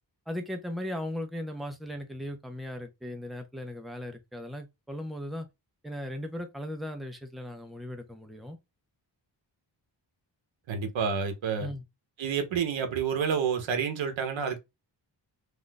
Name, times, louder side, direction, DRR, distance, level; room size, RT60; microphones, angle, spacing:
voice 1, 0.3-5.5 5.8-8.6 11.6-11.8, left 1 dB, ahead, 0.4 m, -37 dB
voice 2, 10.7-11.7 12.2-14.6, right 6 dB, 75° right, 0.8 m, -29 dB
2.5 x 2.2 x 3.7 m
wide cardioid pair, 135°, 46 cm